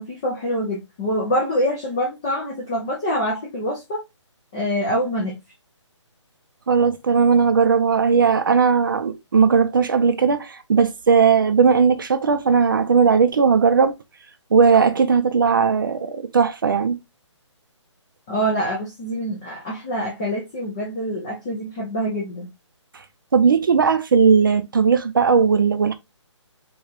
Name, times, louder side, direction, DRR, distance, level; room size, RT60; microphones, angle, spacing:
voice 1, 0.0-4.0 4.5-5.4 18.3-22.5, equal, 10° left, 0.4 m, -25 dB
voice 2, 6.7-13.9 14.5-17.0 23.3-25.9, right 5 dB, 45° right, 0.6 m, -17 dB
4.9 x 2.3 x 4.3 m
hypercardioid pair, 170°, 16 cm